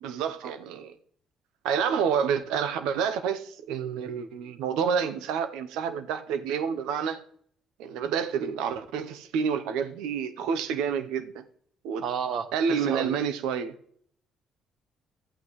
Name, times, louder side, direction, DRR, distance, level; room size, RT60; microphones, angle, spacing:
voice 1, 0.0-0.9 1.6-7.2 7.8-11.4 11.8-12.0 12.5-13.8, right 7 dB, 85° right, 0.8 m, -29 dB
voice 2, 12.0-13.2, right 7 dB, 65° right, 1.1 m, -32 dB
14.0 x 8.4 x 3.2 m
supercardioid pair, 65°, 0 cm